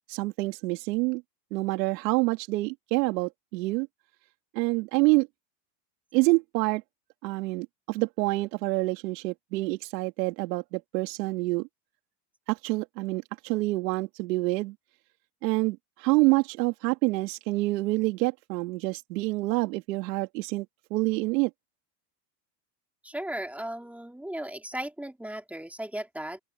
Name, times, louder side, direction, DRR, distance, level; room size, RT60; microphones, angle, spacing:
voice 1, 0.1-1.2 1.5-3.9 4.5-5.3 6.1-6.8 7.2-11.7 12.5-14.7 15.4-20.7 20.9-21.5, right 22 dB, 80° right, 2.5 m, -27 dB
voice 2, 23.0-26.4, right 1 dB, 5° right, 3.2 m, -36 dB
open air
supercardioid pair, 150°, 49 cm